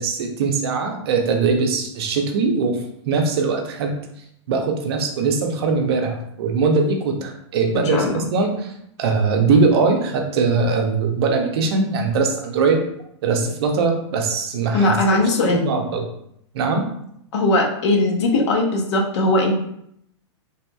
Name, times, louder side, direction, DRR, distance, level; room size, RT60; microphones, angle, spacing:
voice 1, 0.0-2.8 3.1-3.9 4.5-8.7 9.0-12.8 13.2-15.0 15.4-16.0 16.5-16.8, right 4 dB, 60° right, 3 dB, 0.6 m, -21 dB
voice 2, 7.7-8.2 14.7-15.7 17.3-19.5, left 2 dB, 70° left, 1 dB, 0.8 m, -19 dB
3.3 x 2.8 x 2.3 m, 0.73 s
supercardioid pair, 155°, 15 cm